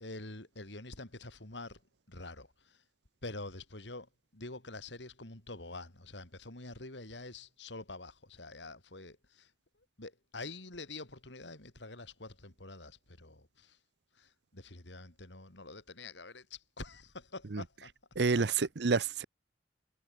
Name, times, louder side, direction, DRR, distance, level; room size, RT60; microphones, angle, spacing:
voice 1, 0.0-1.8 2.1-2.8 3.2-9.5 10.0-13.8 14.1-17.9 18.3-18.4, left 2 dB, 80° left, 4.1 m, -46 dB
voice 2, 18.2-19.2, right 4 dB, 65° right, 0.7 m, -28 dB
head